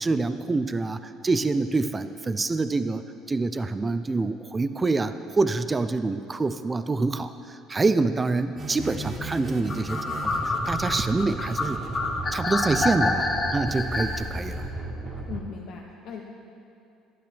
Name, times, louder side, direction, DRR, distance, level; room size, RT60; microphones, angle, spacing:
voice 1, 0.0-11.8 12.3-14.6, right 3 dB, 20° right, 10 dB, 0.4 m, -26 dB
sound 1, 8.5-15.4, right 1 dB, 45° right, 1.5 m, -35 dB
sound 2, 9.7-14.2, left 3 dB, 30° left, 0.9 m, -27 dB
voice 2, 15.3-16.2, left 6 dB, 60° left, 0 dB, 0.8 m, -38 dB
12.0 x 11.0 x 3.4 m, 2.6 s
cardioid pair, 120°, 0 cm